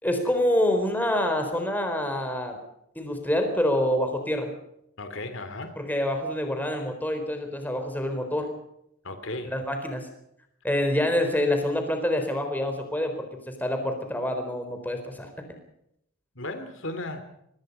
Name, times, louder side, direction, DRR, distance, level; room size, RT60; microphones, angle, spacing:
voice 1, 0.0-2.6 3.0-4.5 5.8-8.5 9.4-10.1 10.6-13.1 13.5-15.3, left 1 dB, 10° left, 5 dB, 4.2 m, -26 dB
voice 2, 5.0-5.7 9.0-9.5 16.3-17.2, left 2 dB, 60° left, 9 dB, 2.7 m, -35 dB
24.5 x 21.0 x 5.5 m, 0.77 s
head